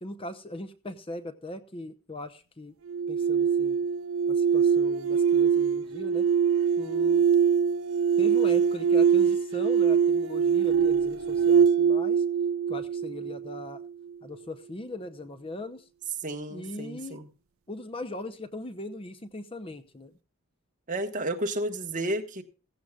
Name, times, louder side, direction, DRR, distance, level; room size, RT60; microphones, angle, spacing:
voice 1, 0.0-2.7 3.1-3.8 4.3-6.3 6.8-7.2 8.2-12.2 12.7-13.8 14.2-15.9 16.5-17.2 17.7-20.1, left 1 dB, 25° left, 0.7 m, -39 dB
sound 1, 2.9-13.9, right 7 dB, 70° right, 0.5 m, -23 dB
voice 2, 16.2-17.3 20.9-22.4, right 1 dB, 35° right, 1.4 m, -32 dB
15.5 x 15.0 x 2.4 m
head